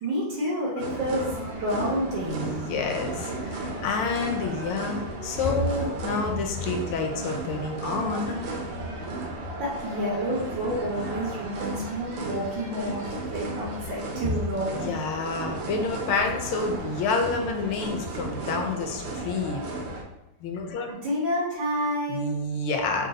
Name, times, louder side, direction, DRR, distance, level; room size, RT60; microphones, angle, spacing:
voice 1, 0.0-2.5 9.6-14.9 20.9-22.3, equal, 65° right, -6 dB, 1.6 m, -29 dB
sound 1, 0.8-20.0, right 2 dB, 90° right, 1.6 m, -34 dB
voice 2, 2.2-8.4 14.2-14.4 14.7-19.6 20.4-20.9 22.1-23.1, left 3 dB, 80° left, 3 dB, 1.4 m, -28 dB
3.8 x 2.6 x 3.9 m, 0.96 s
omnidirectional pair, 2.4 m